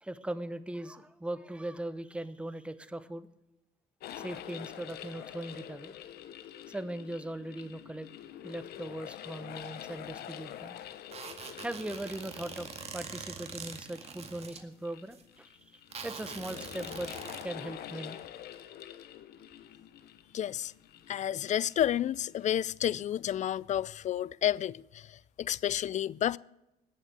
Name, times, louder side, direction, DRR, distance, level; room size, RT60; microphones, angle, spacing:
voice 1, 0.0-3.3 4.1-6.0 6.7-8.1 8.4-10.8 11.6-17.1 17.4-18.2, right 1 dB, 5° right, 1.0 m, -39 dB
sound 1, 4.0-22.6, left 11 dB, 70° left, 1.1 m, -47 dB
sound 2, 11.1-14.6 15.1-15.2 15.9-17.4, right 5 dB, 35° right, 2.1 m, -44 dB
voice 2, 20.3-20.7 21.1-24.8 25.4-26.4, left 11 dB, 45° left, 0.4 m, -30 dB
19.0 x 7.3 x 8.1 m
cardioid pair, 110°, 17 cm